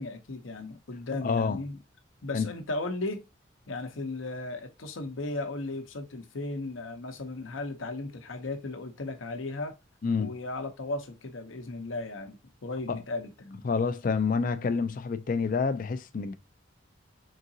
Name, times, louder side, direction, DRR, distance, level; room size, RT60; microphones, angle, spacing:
voice 1, 0.0-1.8 2.2-3.2 3.7-9.8 10.2-13.6, left 2 dB, 80° left, 0.7 m, -36 dB
voice 2, 1.2-1.6 2.3-2.5 10.0-10.4 12.9-13.0 13.6-16.3, left 5 dB, 45° left, 0.4 m, -28 dB
3.8 x 3.7 x 2.7 m
head